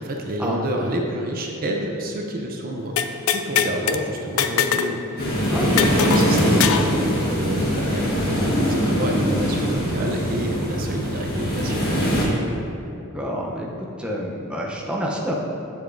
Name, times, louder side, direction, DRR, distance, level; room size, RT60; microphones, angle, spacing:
voice 1, 0.0-12.0, right 1 dB, 45° right, 2 dB, 0.5 m, -29 dB
sound 1, 3.0-4.0 4.4-4.9 5.2-5.3 5.8-6.9, left 8 dB, 65° left, 0.3 m, -22 dB
sound 2, 5.2-12.2, equal, 45° left, 1.5 m, -22 dB
voice 2, 5.5-5.9 13.1-13.7 14.0-15.3, equal, 5° right, -3 dB, 0.6 m, -28 dB
7.7 x 6.9 x 2.6 m, 2.7 s
head